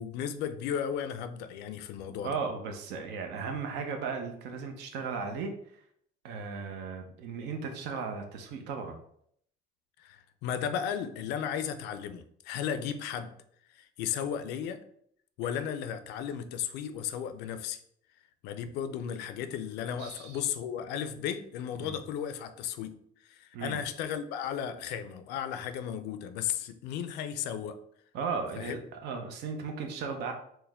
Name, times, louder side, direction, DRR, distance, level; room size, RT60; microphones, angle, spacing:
voice 1, 0.0-2.3 10.0-13.4 13.7-14.8 15.4-17.8 18.4-23.0 23.3-27.8 28.6-28.8, left 8 dB, 90° left, 10 dB, 0.4 m, -35 dB
voice 2, 2.2-5.8 6.2-9.0 20.0-20.4 21.8-22.0 23.5-23.8 28.1-30.3, right 5 dB, 85° right, 4 dB, 0.7 m, -36 dB
4.5 x 2.1 x 3.4 m, 0.68 s
cardioid pair, 110°, 17 cm